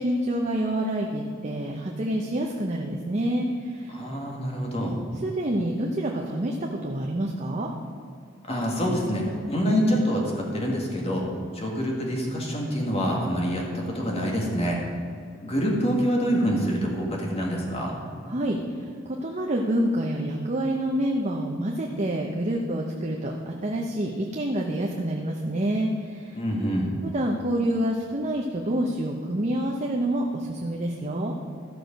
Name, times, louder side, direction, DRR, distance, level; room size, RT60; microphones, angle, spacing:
voice 1, 0.0-3.9 5.2-7.7 18.2-26.4 27.0-31.3, right 1 dB, 35° right, 0 dB, 0.7 m, -27 dB
voice 2, 3.9-5.0 8.4-11.2 11.5-14.8 15.4-18.0 26.3-26.9, equal, 30° left, -1 dB, 1.9 m, -26 dB
14.0 x 6.3 x 5.2 m, 2.3 s
head